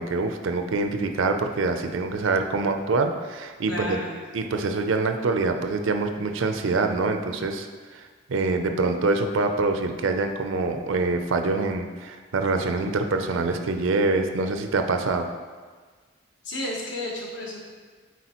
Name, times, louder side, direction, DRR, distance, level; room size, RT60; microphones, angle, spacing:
voice 1, 0.0-4.0 4.3-7.7 7.9-15.3, right 3 dB, 75° right, 6 dB, 0.5 m, -25 dB
voice 2, 3.7-4.2 16.4-17.6, left 1 dB, 60° left, -3 dB, 1.3 m, -32 dB
8.2 x 4.3 x 3.0 m, 1.5 s
head